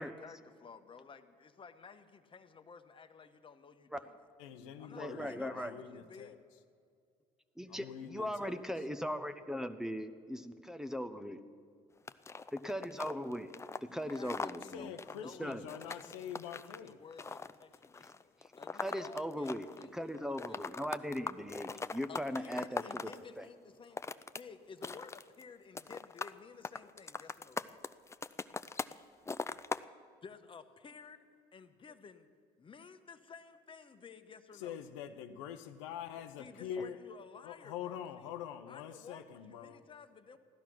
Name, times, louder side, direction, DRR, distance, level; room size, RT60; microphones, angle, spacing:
voice 1, 0.0-4.1 4.8-6.4 13.9-20.7 22.1-24.0 24.4-27.8 30.2-31.3 31.5-32.3 32.6-34.8 36.4-38.3 38.7-40.4, left 5 dB, 35° left, 9 dB, 1.1 m, -54 dB
voice 2, 4.4-6.3 7.7-8.6 14.6-17.0 34.6-37.0 37.4-39.8, left 9 dB, 90° left, 8 dB, 0.8 m, -45 dB
voice 3, 5.0-5.8 7.6-11.4 12.5-13.5 13.8-14.9 15.4-15.6 18.8-19.7 19.9-23.1 23.4-23.5, equal, 5° right, 11 dB, 0.8 m, -39 dB
sound 1, 12.1-19.9 20.1-23.2 23.7-24.4 24.7-25.4 25.7-26.4 26.6-29.0 29.3-29.8, left 4 dB, 15° left, 0.5 m, -41 dB
15.5 x 11.5 x 6.1 m, 2.2 s
supercardioid pair, 75°, 16 cm